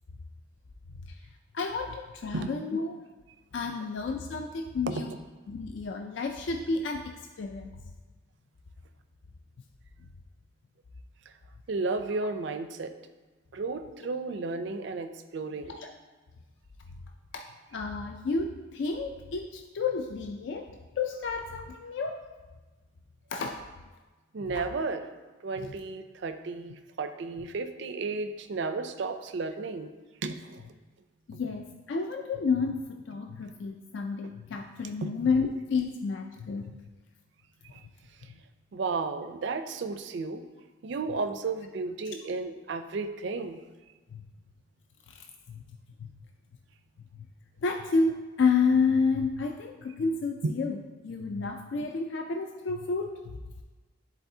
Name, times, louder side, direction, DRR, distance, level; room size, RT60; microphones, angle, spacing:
voice 1, 1.5-3.0 3.5-5.1 5.5-7.7 15.7-15.9 17.3-17.4 17.7-20.7 21.0-22.2 23.3-23.6 24.5-24.6 31.3-36.7 44.1-44.2 45.2-45.6 46.0-46.1 47.6-53.1, left 4 dB, 60° left, 4 dB, 0.4 m, -30 dB
voice 2, 4.9-5.2 11.7-12.9 13.5-15.8 24.3-25.0 25.4-29.9 30.2-30.6 35.0-35.1 37.6-37.8 38.7-40.4 40.8-43.6 50.4-50.5, right 3 dB, 60° right, 9 dB, 0.4 m, -33 dB
10.5 x 4.0 x 2.7 m, 1.2 s
head